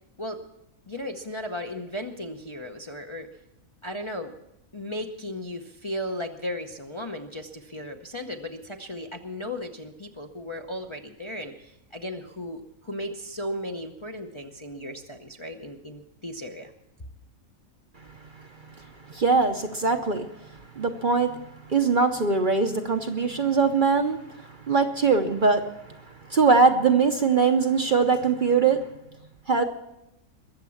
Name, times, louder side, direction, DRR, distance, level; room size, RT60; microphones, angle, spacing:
voice 1, 0.9-3.3 3.8-4.3 4.7-16.7, left 1 dB, 25° left, 3 dB, 0.7 m, -35 dB
voice 2, 19.1-20.3 20.8-21.4 21.7-25.7 26.3-28.8 29.5-29.6, right 4 dB, 45° right, 6 dB, 0.8 m, -22 dB
22.0 x 7.4 x 7.1 m, 0.87 s
omnidirectional pair, 1.5 m